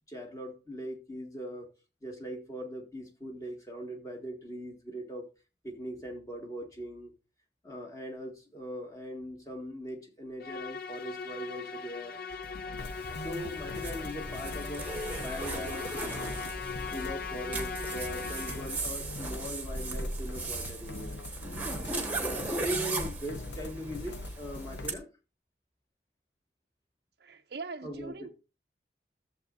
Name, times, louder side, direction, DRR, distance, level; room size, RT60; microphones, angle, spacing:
voice 1, 0.1-1.7 2.0-5.3 5.6-7.1 7.6-12.2 13.2-14.9 15.2-16.4 16.9-21.2 22.1-25.1 27.8-28.3, equal, 20° left, 1.8 m, -40 dB
Musical instrument, 10.4-18.9, left 5 dB, 55° left, 0.5 m, -39 dB
sound 1, 12.3-24.9, left 2 dB, 85° left, 0.8 m, -44 dB
Zipper (clothing), 12.8-24.9, right 2 dB, 10° right, 1.2 m, -37 dB
voice 2, 27.2-28.3, right 4 dB, 65° right, 0.5 m, -41 dB
14.5 x 7.2 x 2.6 m
head